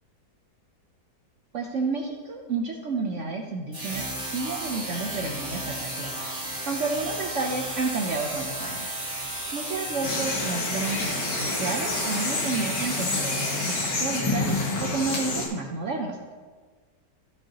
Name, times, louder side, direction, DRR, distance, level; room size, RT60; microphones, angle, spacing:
voice 1, 1.5-4.0 4.3-8.9 9.5-16.3, right 4 dB, 60° right, 1 dB, 0.9 m, -31 dB
sound 1, 3.7-14.3, right 1 dB, 35° right, 2.9 m, -33 dB
sound 2, 10.0-15.5, left 2 dB, 85° left, 2.0 m, -28 dB
14.0 x 5.6 x 2.9 m, 1.5 s
omnidirectional pair, 1.8 m